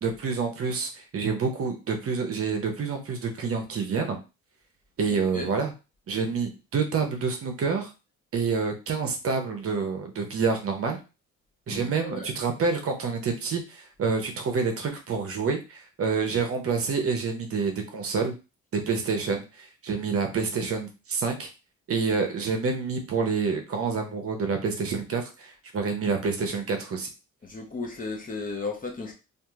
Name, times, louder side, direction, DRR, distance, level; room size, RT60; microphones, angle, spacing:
voice 1, 0.0-4.2 5.0-5.7 6.1-7.9 8.3-11.0 11.7-18.3 18.7-21.5 21.9-27.1, right 5 dB, 50° right, 4 dB, 0.8 m, -28 dB
voice 2, 11.7-12.3 27.4-29.1, left 4 dB, 30° left, 1 dB, 0.8 m, -34 dB
2.9 x 2.5 x 2.4 m, 0.29 s
cardioid pair, 90°, 30 cm